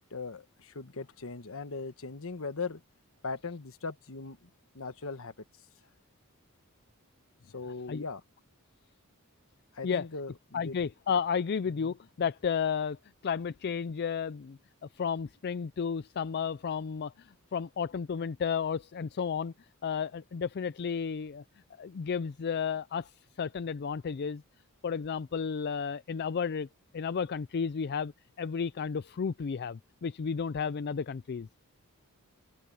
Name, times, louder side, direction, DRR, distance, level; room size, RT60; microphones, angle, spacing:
voice 1, 0.0-2.8 3.2-4.5 4.7-5.3 7.5-8.2 9.7-10.8 11.8-11.9, left 4 dB, 65° left, 1.2 m, -39 dB
voice 2, 10.5-13.0 13.2-14.6 15.0-19.5 19.8-21.4 21.8-23.1 23.4-24.4 24.8-26.7 26.9-28.1 28.4-31.5, left 6 dB, 45° left, 0.4 m, -32 dB
head